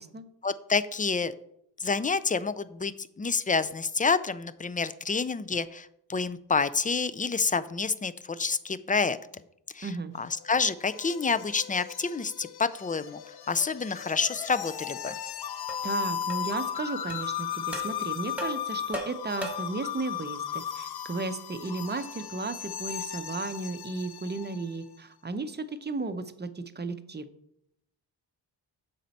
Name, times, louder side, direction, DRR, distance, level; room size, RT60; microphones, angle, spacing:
voice 1, 0.4-1.3 1.8-9.2 9.7-9.9 10.2-13.2 13.5-15.2, left 4 dB, 20° left, 15 dB, 0.3 m, -28 dB
voice 2, 9.8-10.1 15.8-27.3, right 3 dB, 25° right, 10 dB, 0.7 m, -34 dB
sound 1, 10.1-24.8, left 9 dB, 60° left, 0.6 m, -36 dB
sound 2, 15.1-15.2 15.7-15.9 16.3-16.4 17.1-17.2 17.7-17.9 18.4-19.8, right 1 dB, 5° right, 1.6 m, -37 dB
7.5 x 5.3 x 4.1 m, 0.76 s
cardioid pair, 65°, 44 cm